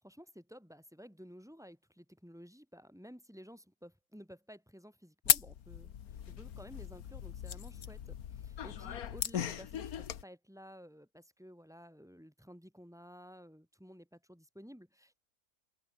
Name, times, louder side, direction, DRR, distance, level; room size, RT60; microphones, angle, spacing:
voice 1, 0.0-15.2, equal, ahead, 3.4 m, -54 dB
sound 1, 5.2-10.2, left 9 dB, 80° left, 1.6 m, -36 dB
open air
omnidirectional pair, 1.5 m